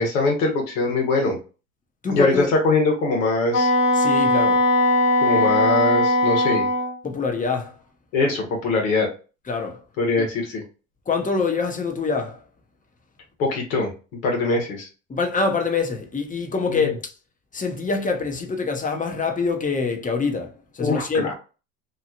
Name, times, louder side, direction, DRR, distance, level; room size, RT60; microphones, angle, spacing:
voice 1, 0.0-1.4 2.1-3.7 5.2-6.7 8.1-9.1 10.0-10.6 13.4-13.9 14.2-14.9 16.7-16.9 20.8-21.3, left 3 dB, 85° left, 1.2 m, -22 dB
voice 2, 2.0-2.5 3.9-4.7 7.0-7.8 9.5-9.8 10.2-10.3 11.1-12.4 15.1-17.1 17.5-21.3, left 4 dB, 20° left, 0.7 m, -25 dB
Wind instrument woodwind instrument, 3.5-7.0, left 1 dB, 40° left, 1.1 m, -19 dB
2.8 x 2.3 x 2.7 m
supercardioid pair, 85°, 41 cm